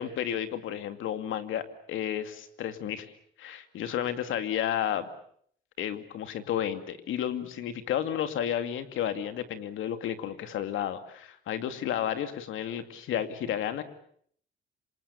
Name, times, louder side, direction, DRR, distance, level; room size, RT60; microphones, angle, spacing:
voice 1, 0.0-3.1 3.4-5.1 5.8-13.8, left 10 dB, 80° left, 9 dB, 2.5 m, -32 dB
27.0 x 26.5 x 7.1 m, 0.63 s
cardioid pair, 90°, 20 cm